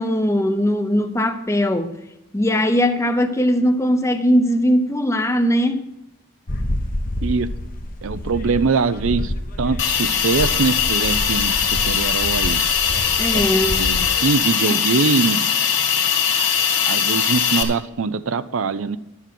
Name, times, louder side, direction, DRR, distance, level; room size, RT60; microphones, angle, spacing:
voice 1, 0.0-2.0 2.3-5.8 13.2-13.8, equal, 15° left, 8 dB, 0.7 m, -19 dB
sound 1, 6.5-14.1, left 1 dB, 40° left, 0.9 m, -28 dB
voice 2, 7.2-7.5 8.0-9.3 9.6-12.6 13.3-13.4 13.8-15.5 16.9-19.0, right 4 dB, 75° right, 14 dB, 0.5 m, -22 dB
Hiss, 9.8-17.6, left 7 dB, 60° left, 2.4 m, -20 dB
11.5 x 7.2 x 6.0 m, 0.87 s
head